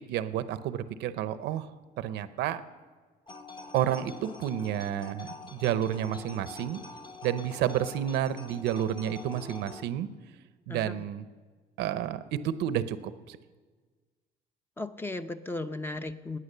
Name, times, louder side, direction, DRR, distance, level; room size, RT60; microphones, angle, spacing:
voice 1, 0.1-1.7 2.0-2.6 3.7-6.8 7.2-10.1 10.7-11.2 11.8-13.0 13.3-13.4, right 11 dB, 85° right, 13 dB, 0.8 m, -30 dB
sound 1, 3.3-9.9, left 3 dB, 30° left, 1.3 m, -45 dB
voice 2, 10.7-11.0 14.8-16.4, left 2 dB, 15° left, 9 dB, 0.7 m, -36 dB
18.5 x 9.5 x 6.7 m, 1.4 s
cardioid pair, 110°, 17 cm